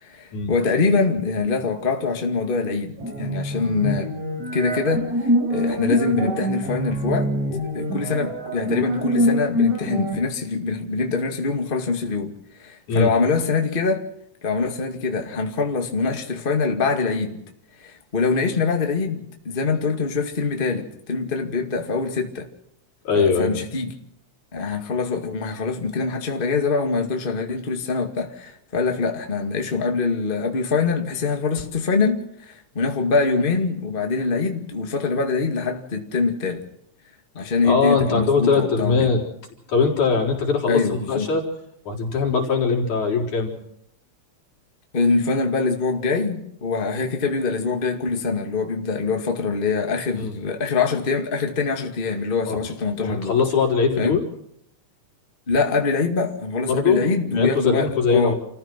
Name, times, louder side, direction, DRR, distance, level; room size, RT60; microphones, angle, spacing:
voice 1, 0.0-4.1 4.5-7.3 7.7-12.3 12.6-14.1 14.4-17.4 17.8-22.5 23.1-24.0 24.5-36.6 37.3-39.1 40.7-41.3 44.9-53.4 54.0-54.2 55.5-58.3, left 4 dB, 20° left, 2.0 m, -24 dB
sound 1, 3.0-10.2, equal, 75° right, 6.9 m, -24 dB
voice 2, 23.0-23.5 37.4-39.2 39.7-41.5 41.9-43.5 50.2-50.3 52.5-52.6 53.0-54.2 56.7-58.4, left 5 dB, 80° left, 5.4 m, -21 dB
29.0 x 15.0 x 6.1 m
omnidirectional pair, 3.4 m